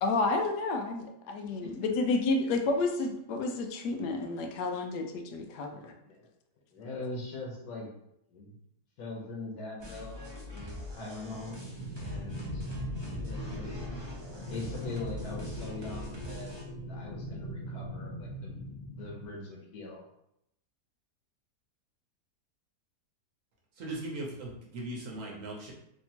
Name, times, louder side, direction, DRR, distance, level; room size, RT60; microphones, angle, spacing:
voice 1, 0.0-5.9, left 3 dB, 90° left, 4 dB, 1.1 m, -30 dB
voice 2, 6.7-7.9 8.3-8.6 9.0-11.7 11.9-12.6 13.2-13.9 14.5-20.1, left 2 dB, 70° left, -2 dB, 1.4 m, -42 dB
sound 1, 9.8-16.6, left 1 dB, 30° right, 0.5 m, -43 dB
sound 2, 11.3-19.3, equal, 20° left, 0.7 m, -40 dB
voice 3, 23.8-25.7, right 2 dB, 60° right, -2 dB, 1.0 m, -39 dB
3.3 x 2.8 x 2.7 m, 0.78 s
omnidirectional pair, 1.7 m